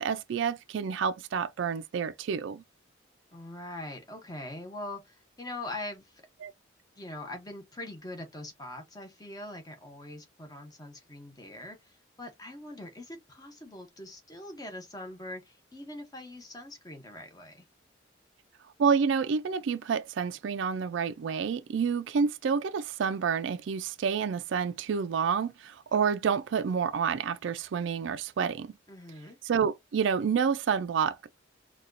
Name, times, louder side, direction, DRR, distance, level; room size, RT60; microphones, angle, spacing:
voice 1, 0.0-2.6 6.4-6.5 18.8-28.7 29.4-31.2, right 6 dB, 70° right, 0.3 m, -29 dB
voice 2, 3.3-6.2 7.0-17.6 28.9-29.4, left 1 dB, 20° left, 0.8 m, -42 dB
4.1 x 2.3 x 2.5 m
head